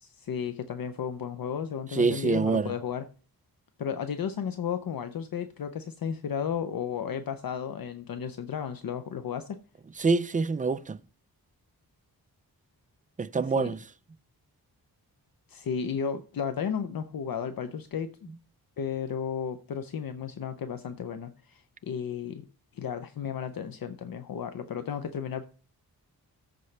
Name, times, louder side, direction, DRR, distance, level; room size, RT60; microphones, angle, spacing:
voice 1, 0.0-3.1 3.8-9.6 13.6-13.7 15.5-18.1 18.8-22.4 22.7-25.5, left 7 dB, 60° left, 0.7 m, -33 dB
voice 2, 1.9-2.7 10.0-11.0 13.2-13.8, right 4 dB, 20° right, 0.4 m, -26 dB
13.5 x 5.2 x 3.3 m
wide cardioid pair, 115°, 39 cm